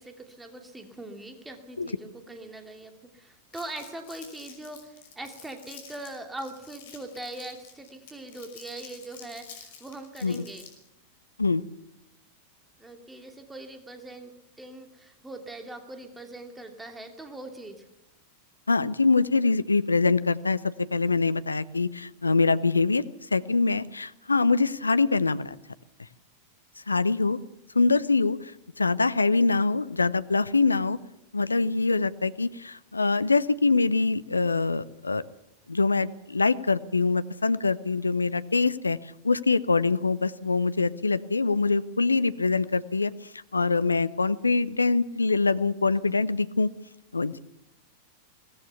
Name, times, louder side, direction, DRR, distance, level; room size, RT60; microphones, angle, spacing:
voice 1, 0.0-10.6 12.8-17.8, right 2 dB, 10° right, 5 dB, 2.7 m, -41 dB
Crumpling crinkling, 3.5-10.9, left 7 dB, 55° left, 5.5 m, -49 dB
voice 2, 18.7-23.0 23.3-25.6 26.9-27.4 27.7-28.5 28.8-31.0 31.3-35.2 35.7-39.0 39.2-43.1 43.5-46.7 47.1-47.4, left 3 dB, 80° left, 16 dB, 0.7 m, -24 dB
22.0 x 17.5 x 7.0 m, 0.85 s
figure-of-eight pair, 90°, 0 cm